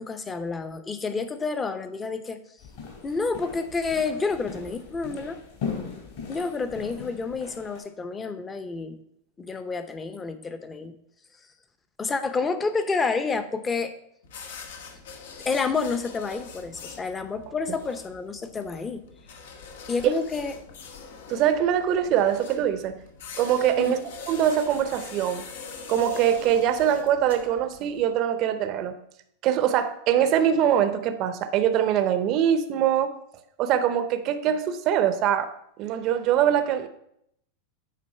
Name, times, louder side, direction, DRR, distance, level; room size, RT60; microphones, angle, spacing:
voice 1, 0.0-2.4 3.0-5.4 6.3-9.0 9.4-10.9 12.0-13.9 15.4-19.0 19.9-20.5 23.8-24.0, left 4 dB, 15° left, 10 dB, 0.7 m, -29 dB
sound 1, 2.6-7.8, left 5 dB, 60° left, 2.9 m, -38 dB
sound 2, 14.2-28.1, left 5 dB, 80° left, 1.3 m, -43 dB
voice 2, 21.3-23.0 23.4-24.0 24.3-25.5 25.9-29.0 29.4-33.1 33.6-35.5 35.8-36.9, right 10 dB, 40° right, 9 dB, 0.6 m, -23 dB
8.5 x 3.9 x 5.5 m, 0.73 s
supercardioid pair, 145°, 0 cm